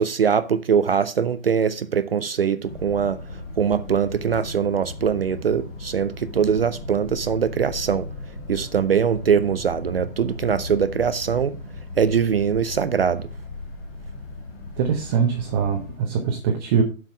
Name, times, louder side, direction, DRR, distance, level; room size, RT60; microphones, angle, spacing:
voice 1, 0.0-3.2 3.6-8.1 8.5-11.6 12.0-13.3, right 7 dB, 45° right, 0.5 m, -22 dB
sound 1, 2.6-16.0, left 2 dB, 40° left, 2.6 m, -37 dB
voice 2, 14.8-16.8, right 6 dB, 20° right, 0.9 m, -22 dB
7.7 x 5.7 x 5.7 m
figure-of-eight pair, 135°, 41 cm